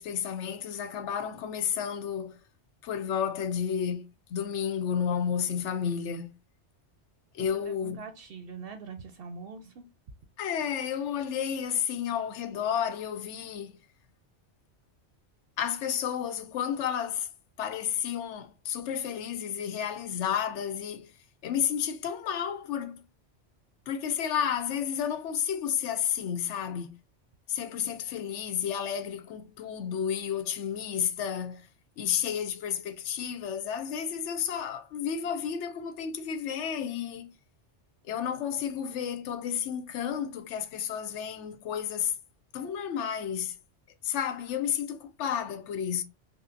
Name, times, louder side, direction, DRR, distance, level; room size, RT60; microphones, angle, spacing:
voice 1, 0.0-2.4 2.8-6.3 7.3-8.0 10.4-13.8 15.6-17.3 17.6-21.1 21.4-23.0 23.9-26.9 27.5-31.7 32.0-37.3 38.1-42.1 42.5-43.6 44.0-46.0, left 8 dB, 90° left, 0.9 m, -31 dB
voice 2, 7.4-9.8, right 5 dB, 65° right, 0.7 m, -43 dB
5.4 x 2.0 x 2.5 m
omnidirectional pair, 1.2 m